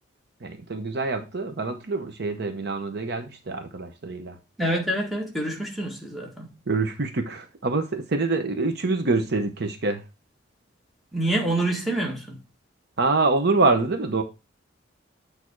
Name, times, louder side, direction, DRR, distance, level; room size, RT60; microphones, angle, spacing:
voice 1, 0.4-4.4 6.7-10.0 13.0-14.2, right 3 dB, 55° right, 0.9 m, -25 dB
voice 2, 4.6-6.5 11.1-12.4, right 1 dB, ahead, 1.6 m, -26 dB
8.5 x 3.5 x 4.6 m
head